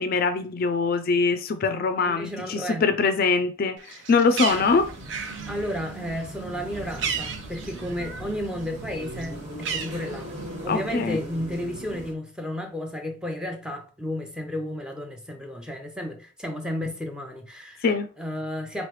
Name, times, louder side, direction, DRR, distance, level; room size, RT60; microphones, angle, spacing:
voice 1, 0.0-4.9 10.7-11.2 17.8-18.1, left 4 dB, 45° left, 0.4 m, -23 dB
voice 2, 2.0-2.9 5.5-10.3 10.6-17.9 18.2-18.9, left 1 dB, 5° right, 0.6 m, -32 dB
Bird, 3.8-8.4 8.7-10.6, right 6 dB, 60° right, 0.6 m, -34 dB
sound 1, 4.5-12.1, right 1 dB, 35° right, 1.5 m, -39 dB
4.0 x 3.2 x 3.1 m
head